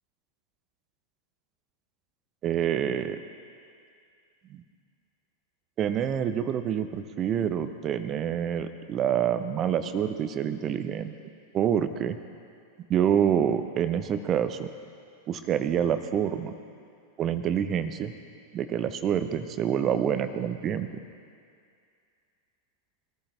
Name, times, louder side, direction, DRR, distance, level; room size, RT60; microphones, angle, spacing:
voice 1, 2.4-3.2 4.5-4.6 5.8-11.1 11.5-12.2 12.9-14.7 15.3-16.5 17.2-18.1 18.5-20.9, right 9 dB, 30° right, 11 dB, 0.7 m, -27 dB
23.5 x 14.0 x 3.3 m, 2.3 s
figure-of-eight pair, 90°, 0 cm